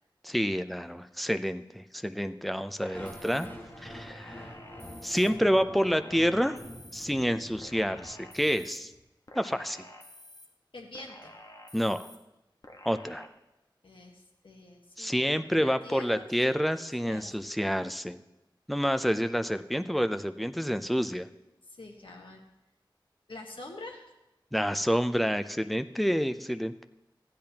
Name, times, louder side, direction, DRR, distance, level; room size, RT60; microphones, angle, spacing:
voice 1, 0.2-3.5 3.8-4.5 5.0-6.6 6.9-8.9 9.3-9.8 11.7-12.1 12.8-13.3 15.0-18.2 18.7-21.3 24.5-26.8, equal, ahead, 9 dB, 0.5 m, -28 dB
sound 1, 2.8-3.5 4.1-5.3 5.8-7.1 7.6-8.8 9.3-10.5 10.9-12.2 12.6-13.3, left 1 dB, 50° left, 1.1 m, -50 dB
sound 2, 2.9-8.9, equal, 25° left, 1.5 m, -46 dB
voice 2, 10.7-11.3 13.8-16.3 16.5-16.7 17.0-17.3 21.7-22.4 23.3-24.0, left 2 dB, 80° left, 1 dB, 1.2 m, -46 dB
15.0 x 10.5 x 2.9 m, 0.96 s
wide cardioid pair, 65°, 8 cm